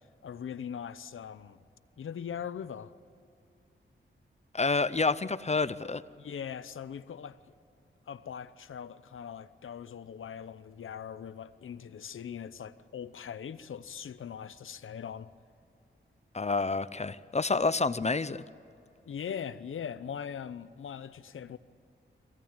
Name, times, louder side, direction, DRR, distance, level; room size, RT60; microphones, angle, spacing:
voice 1, 0.2-1.6 2.0-2.9 6.2-7.4 8.1-15.3 19.1-21.6, left 8 dB, 85° left, 0.8 m, -41 dB
voice 2, 4.5-6.0 16.3-18.4, left 3 dB, 35° left, 0.7 m, -28 dB
23.5 x 16.5 x 8.9 m
cardioid pair, 70°, 20 cm